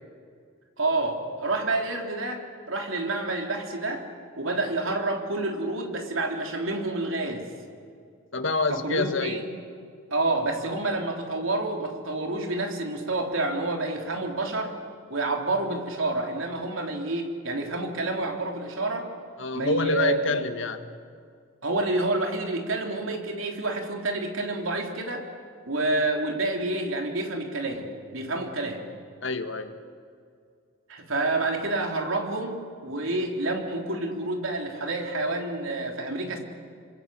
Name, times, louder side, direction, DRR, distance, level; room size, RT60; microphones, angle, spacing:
voice 1, 0.8-4.1 4.4-7.5 8.7-9.5 10.1-14.8 15.1-19.1 19.5-20.5 21.6-25.3 25.7-28.8 30.9-36.4, right 2 dB, 75° right, 2 dB, 3.6 m, -28 dB
voice 2, 8.3-9.4 19.4-20.9 29.2-29.7, left 3 dB, 65° left, 8 dB, 1.7 m, -27 dB
28.0 x 26.0 x 7.7 m, 2.2 s
head